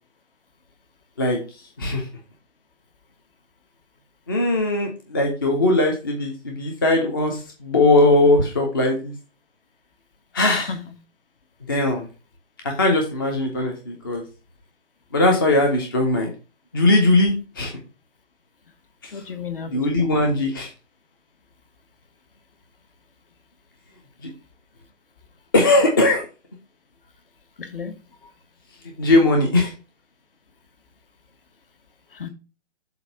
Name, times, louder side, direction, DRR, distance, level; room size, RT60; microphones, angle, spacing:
voice 1, 4.3-9.1 10.3-10.7 11.7-12.1 12.8-14.2 15.1-16.3 16.7-17.7 19.0-19.1 19.7-20.7 24.2-24.3 25.5-26.2 29.0-29.7, left 2 dB, 20° left, 0.6 m, -19 dB
voice 2, 10.5-10.8 19.1-20.3 27.6-27.9 32.1-32.3, left 6 dB, 50° left, 1.1 m, -33 dB
7.7 x 2.6 x 5.5 m
figure-of-eight pair, 140°, 35 cm